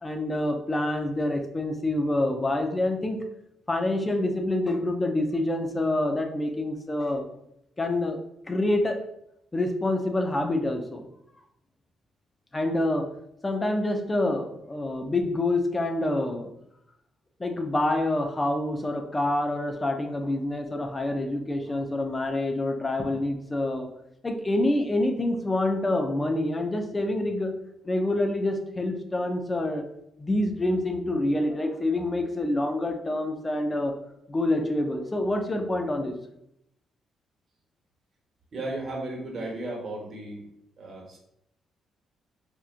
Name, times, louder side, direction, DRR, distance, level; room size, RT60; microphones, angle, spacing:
voice 1, 0.0-3.2 3.7-7.2 7.8-8.2 8.5-9.0 9.5-11.0 12.5-13.1 13.4-16.5 17.4-23.9 24.2-27.5 27.8-29.8 30.2-33.9 34.3-36.2, left 1 dB, 15° left, 4 dB, 0.4 m, -27 dB
voice 2, 38.5-40.4 40.8-41.2, right 2 dB, 45° right, -2 dB, 1.0 m, -35 dB
4.3 x 2.4 x 2.4 m, 0.79 s
cardioid pair, 145°, 0 cm